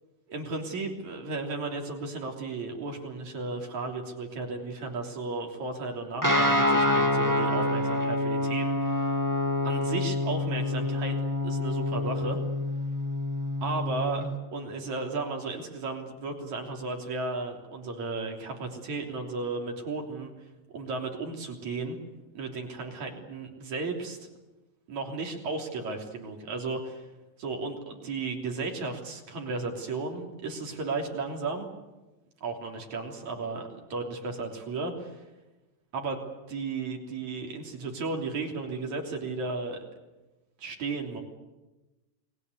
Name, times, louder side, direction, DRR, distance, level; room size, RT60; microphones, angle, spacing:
voice 1, 0.3-9.2 9.6-11.2 11.4-12.4 13.6-20.3 20.7-22.0 22.3-24.2 24.9-27.1 27.4-31.7 32.4-35.2 35.9-39.9 40.6-41.2, right 3 dB, 70° right, 2 dB, 4.7 m, -34 dB
Guitar, 6.2-14.3, left 1 dB, 10° right, 1.4 m, -27 dB
29.5 x 21.0 x 8.1 m, 1.1 s
omnidirectional pair, 3.4 m